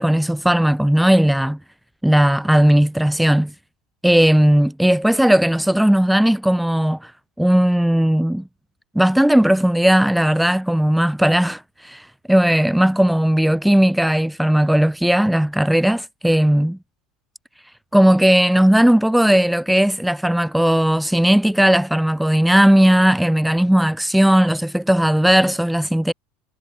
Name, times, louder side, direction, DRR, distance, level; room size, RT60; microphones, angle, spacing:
voice 1, 0.0-1.6 2.0-3.5 4.0-7.1 7.4-8.4 8.9-16.8 17.9-26.1, equal, ahead, 1.2 m, -16 dB
figure-of-eight pair, 75°, 0 cm